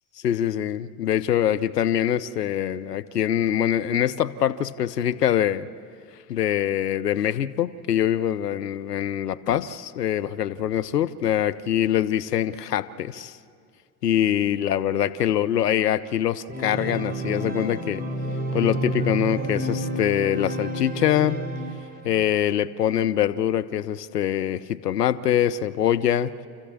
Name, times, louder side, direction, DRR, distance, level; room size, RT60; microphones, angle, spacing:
voice 1, 0.2-5.7 6.3-13.4 14.0-18.0 18.5-21.4 22.0-26.3, left 10 dB, 90° left, 15 dB, 0.7 m, -24 dB
Organ, 16.5-22.2, right 1 dB, 20° right, 4.4 m, -30 dB
28.5 x 14.5 x 8.7 m, 2.2 s
hypercardioid pair, 75°, 46 cm